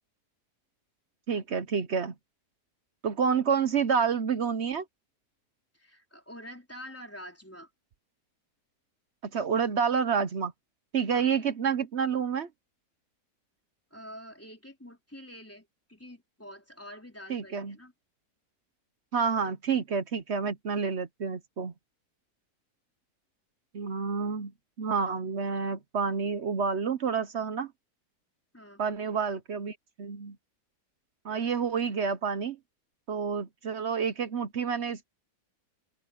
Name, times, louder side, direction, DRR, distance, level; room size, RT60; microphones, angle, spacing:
voice 1, 1.3-2.1 3.0-4.8 9.3-10.5 10.9-12.5 17.3-17.8 19.1-21.7 23.7-24.5 24.8-27.7 28.8-30.4 31.2-32.6 33.1-35.0, right 6 dB, 50° right, 1.0 m, -29 dB
voice 2, 5.7-7.7 11.1-11.3 13.9-17.9 28.5-29.0, equal, 10° left, 3.8 m, -47 dB
open air
omnidirectional pair, 1.7 m